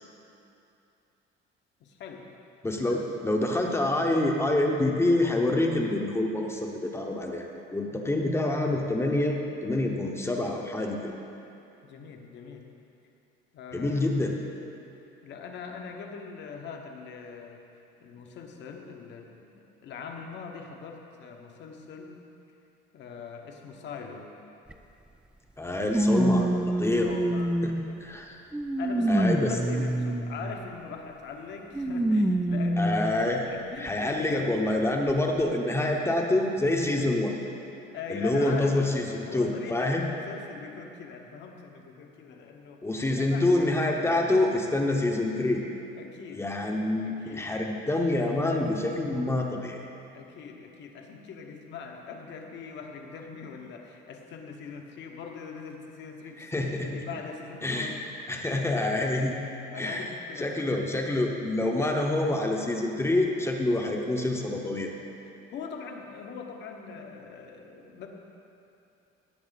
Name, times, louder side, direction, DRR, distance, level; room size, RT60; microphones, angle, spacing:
voice 1, 1.8-2.3 2.8-3.0 7.8-8.3 11.8-12.6 13.5-14.0 15.2-17.7 18.0-19.5 19.8-22.2 22.9-24.3 26.8-28.2 28.8-32.9 33.5-34.5 35.8-36.0 37.9-38.9 39.2-42.8 43.2-43.5 46.0-46.5 47.0-47.5 50.1-58.0 58.6-59.1 59.7-60.9 65.5-68.1, left 5 dB, 60° left, 2 dB, 1.3 m, -42 dB
voice 2, 2.6-11.1 13.7-14.4 25.6-26.5 26.8-27.1 27.6-27.7 28.0-28.4 29.1-29.5 32.8-33.4 33.8-37.3 38.1-40.0 42.8-45.6 46.4-49.8 56.4-57.0 57.6-58.0 58.3-59.4 59.8-60.1 60.4-64.9, left 2 dB, 10° left, 1 dB, 1.0 m, -27 dB
sound 1, 24.7-24.8 25.9-28.0 28.5-30.6 31.7-33.2 33.9-34.0 35.1-35.2, right 1 dB, 5° right, 0.4 m, -26 dB
18.0 x 7.2 x 4.1 m, 2.8 s
cardioid pair, 135°, 21 cm